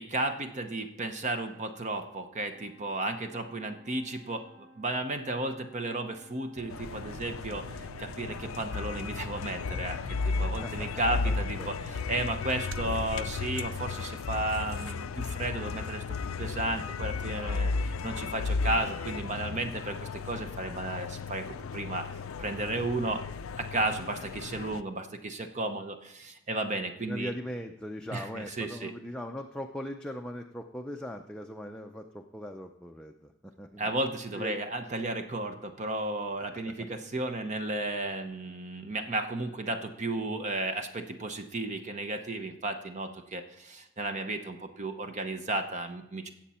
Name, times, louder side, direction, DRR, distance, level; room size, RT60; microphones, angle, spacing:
voice 1, 0.0-16.0 16.4-20.0 20.2-21.4 21.7-22.0 22.4-23.2 23.6-27.3 28.1-28.9 33.8-46.3, right 2 dB, 35° right, 7 dB, 0.7 m, -33 dB
Brass instrument, 2.5-6.9, equal, 20° right, 5.2 m, -57 dB
sound 1, 6.5-14.9, right 4 dB, 70° right, 0.5 m, -47 dB
sound 2, 6.7-24.8, left 4 dB, 80° left, 0.4 m, -34 dB
voice 2, 10.4-11.7 27.1-33.3 33.6-33.9 34.4-34.6, equal, 5° left, 2 dB, 0.5 m, -40 dB
17.0 x 7.5 x 4.3 m, 0.93 s
head